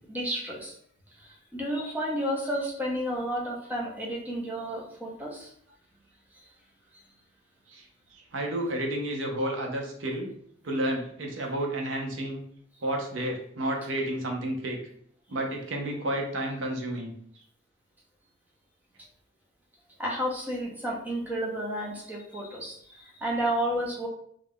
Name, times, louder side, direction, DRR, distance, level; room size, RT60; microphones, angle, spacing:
voice 1, 0.1-0.7 1.2-5.5 20.0-24.1, equal, 10° right, -2 dB, 0.5 m, -31 dB
voice 2, 8.1-10.3 10.6-12.4 12.8-14.8 15.3-17.1, right 1 dB, 75° right, 1 dB, 0.7 m, -31 dB
2.5 x 2.2 x 3.4 m, 0.66 s
head